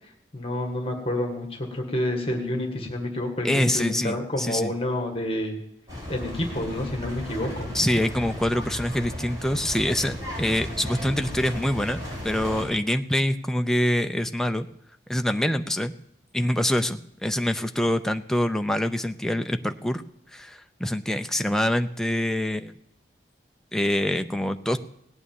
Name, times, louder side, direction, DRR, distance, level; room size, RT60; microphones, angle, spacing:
voice 1, 0.3-5.6 6.1-7.7, left 1 dB, 30° left, 3 dB, 1.8 m, -29 dB
voice 2, 3.4-4.7 7.7-12.0 12.2-14.7 15.1-15.9 16.3-20.0 20.3-22.7 23.7-24.8, left 1 dB, 5° left, 6 dB, 0.5 m, -25 dB
sound 1, 5.9-12.6, left 1 dB, 20° right, 5.1 m, -35 dB
17.5 x 8.9 x 7.1 m, 0.77 s
head